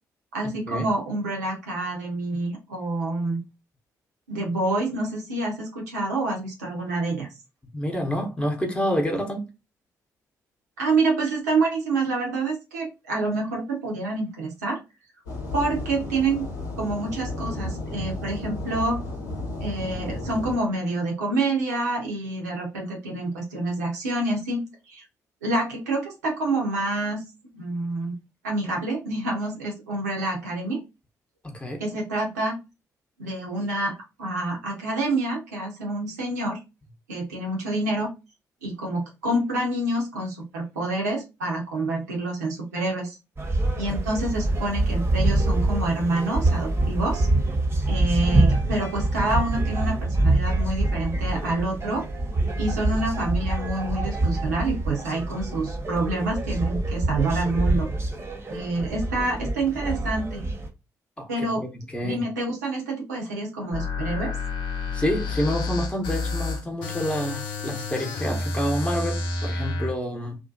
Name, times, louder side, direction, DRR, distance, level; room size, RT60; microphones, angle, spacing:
voice 1, 0.3-3.4 4.3-7.3 10.8-14.8 15.5-16.5 16.8-19.0 19.6-24.6 24.9-25.0 25.4-27.2 27.5-28.2 28.4-30.8 31.8-32.6 33.2-36.6 37.1-38.1 38.6-43.2 43.8-47.3 47.9-52.0 52.6-57.9 58.5-60.4 61.3-61.6 62.0-64.3, right 2 dB, 85° right, 0.6 m, -27 dB
voice 2, 7.7-9.5 31.4-31.8 61.2-61.7 61.9-62.2 64.9-70.4, equal, 10° left, 0.8 m, -28 dB
sound 1, 15.3-20.6, left 2 dB, 85° left, 1.1 m, -33 dB
sound 2, 43.4-60.7, right 2 dB, 30° right, 0.7 m, -25 dB
sound 3, 63.7-69.9, left 3 dB, 65° left, 0.5 m, -29 dB
2.6 x 2.1 x 2.5 m
hypercardioid pair, 40°, 9 cm